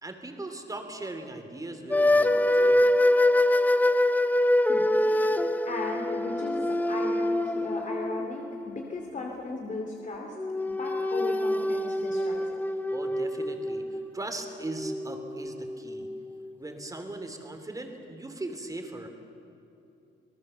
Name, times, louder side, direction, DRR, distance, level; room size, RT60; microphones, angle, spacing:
voice 1, 0.0-2.9 12.9-16.1 16.6-19.1, right 2 dB, 15° right, 5 dB, 3.3 m, -39 dB
sound 1, 1.9-9.2 10.4-16.5, left 1 dB, 10° left, 0.9 m, -25 dB
voice 2, 4.7-10.3 10.6-12.6, left 2 dB, 40° left, 1 dB, 2.7 m, -37 dB
27.5 x 18.5 x 7.1 m, 2.8 s
cardioid pair, 90°, 20 cm